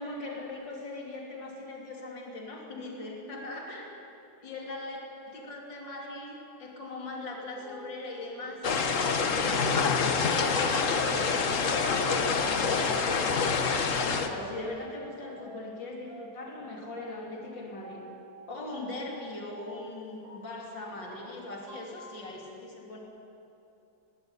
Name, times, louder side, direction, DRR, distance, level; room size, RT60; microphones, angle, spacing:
voice 1, 0.0-3.9 4.4-5.0 5.3-13.5 14.0-18.0 18.5-23.0, left 2 dB, 70° left, 0 dB, 3.7 m, -40 dB
sound 1, 7.2-12.0 12.6-15.8 16.1-22.2, right 1 dB, 85° right, 4.8 m, -49 dB
sound 2, 8.6-14.3, left 5 dB, 45° left, 1.4 m, -26 dB
19.5 x 17.5 x 9.7 m, 2.9 s
omnidirectional pair, 2.0 m